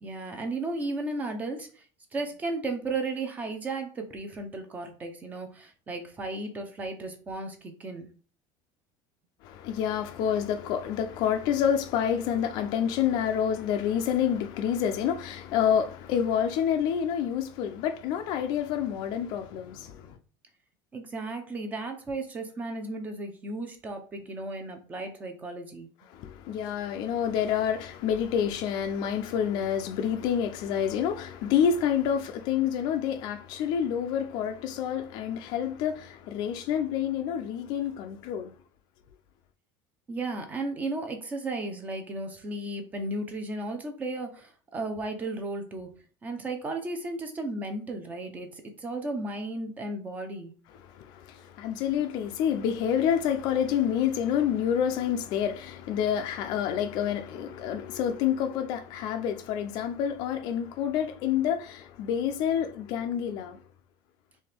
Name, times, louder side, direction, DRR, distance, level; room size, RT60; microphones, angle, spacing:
voice 1, 0.0-1.8 2.1-8.1 20.9-25.9 40.1-45.9 46.2-50.5, right 2 dB, 15° right, 0.7 m, -34 dB
voice 2, 9.4-20.2 26.1-38.5 50.9-63.6, left 9 dB, 45° left, 0.5 m, -28 dB
4.3 x 3.2 x 3.4 m
cardioid pair, 175°, 10 cm